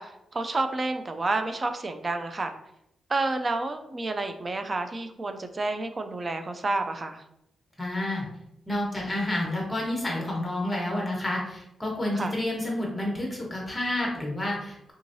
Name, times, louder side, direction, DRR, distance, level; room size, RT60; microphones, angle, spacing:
voice 1, 0.0-2.5 3.1-7.2 12.1-12.3, right 2 dB, 35° right, 7 dB, 0.4 m, -30 dB
voice 2, 7.8-8.2 8.7-14.9, left 1 dB, 15° left, -2 dB, 1.2 m, -29 dB
3.5 x 3.0 x 2.7 m, 0.82 s
cardioid pair, 100°, 0 cm